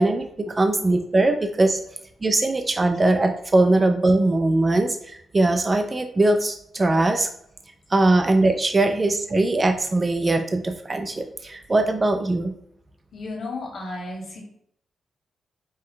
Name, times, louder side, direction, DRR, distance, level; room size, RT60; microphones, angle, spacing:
voice 1, 0.0-1.8 2.2-7.3 7.9-12.5, right 2 dB, 20° right, 5 dB, 0.3 m, -21 dB
voice 2, 13.1-14.4, left 2 dB, 55° left, -2 dB, 1.7 m, -33 dB
5.2 x 2.3 x 3.7 m, 0.69 s
wide cardioid pair, 155°, 0 cm